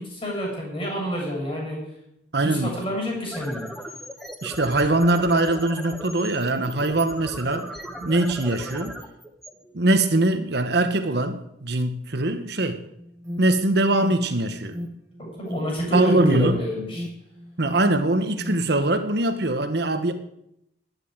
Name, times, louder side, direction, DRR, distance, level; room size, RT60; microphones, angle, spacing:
voice 1, 0.0-1.8 2.4-3.6 15.2-17.1, equal, 30° left, 7.7 m, -28 dB
voice 2, 2.3-2.8 4.4-7.7 8.0-9.0 9.7-12.8 13.4-14.8 15.9-16.7 17.6-20.1, right 2 dB, 60° right, 1.2 m, -22 dB
sound 1, 3.1-10.2, equal, ahead, 1.3 m, -38 dB
Alarm, 13.0-18.8, left 1 dB, 15° right, 1.1 m, -37 dB
12.0 x 10.0 x 8.9 m
head